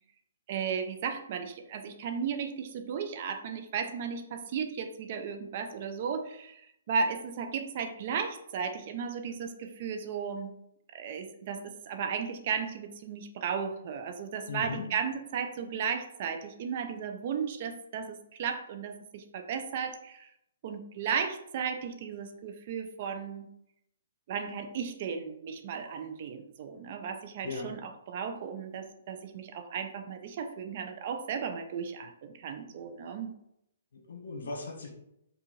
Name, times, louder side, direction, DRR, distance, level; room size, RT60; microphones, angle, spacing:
voice 1, 0.5-10.5 10.9-20.3 20.6-23.5 24.3-33.3, right 6 dB, 40° right, 7 dB, 0.5 m, -35 dB
voice 2, 14.5-14.9 27.4-27.7 33.9-34.9, left 4 dB, 85° left, 1 dB, 1.3 m, -38 dB
4.7 x 2.4 x 3.1 m, 0.78 s
hypercardioid pair, 160°, 0 cm